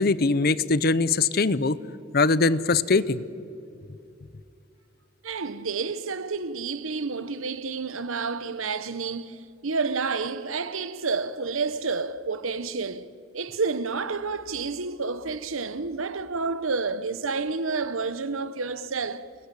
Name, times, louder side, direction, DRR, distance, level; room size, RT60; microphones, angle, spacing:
voice 1, 0.0-1.8 2.1-3.2, left 3 dB, 50° left, 0.7 m, -22 dB
voice 2, 5.2-19.3, right 4 dB, 80° right, 1.0 m, -30 dB
30.0 x 20.5 x 8.4 m
head